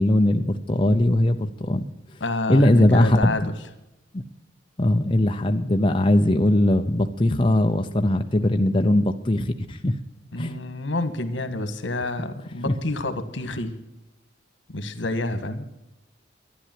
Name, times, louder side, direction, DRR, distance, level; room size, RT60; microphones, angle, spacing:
voice 1, 0.0-1.8 2.5-3.4 4.1-4.2 4.8-9.9 10.4-10.6 12.7-12.8, left 1 dB, 25° left, 5 dB, 0.7 m, -20 dB
voice 2, 2.2-3.4 10.3-13.7 14.7-15.7, left 2 dB, 85° left, 10 dB, 1.5 m, -28 dB
13.0 x 10.0 x 7.6 m, 0.92 s
head